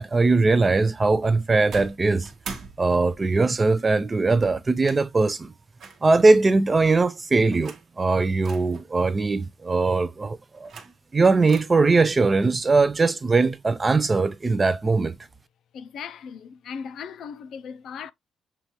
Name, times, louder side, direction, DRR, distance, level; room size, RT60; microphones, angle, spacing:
voice 1, 0.0-2.3 2.8-5.5 6.0-10.7 11.1-15.2, right 3 dB, 20° right, 0.3 m, -20 dB
sound 1, 1.7-3.4 4.3-5.1 5.8-6.5 7.5-7.9 8.4-8.8 10.4-11.1 11.5-11.6, right 5 dB, 50° right, 0.9 m, -42 dB
voice 2, 15.7-18.1, left 6 dB, 60° left, 0.4 m, -37 dB
6.7 x 2.4 x 3.0 m
cardioid pair, 165°, 0 cm